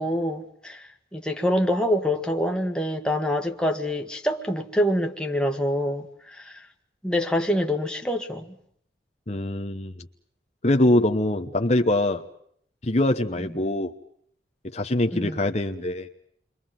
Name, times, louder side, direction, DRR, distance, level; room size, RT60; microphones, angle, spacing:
voice 1, 0.0-6.7 7.0-8.6 13.4-13.5 15.1-15.4, equal, 5° left, 1.8 m, -26 dB
voice 2, 9.3-9.9 10.6-12.2 12.8-13.9 14.7-16.1, left 1 dB, 35° left, 1.1 m, -23 dB
29.5 x 23.5 x 7.6 m
head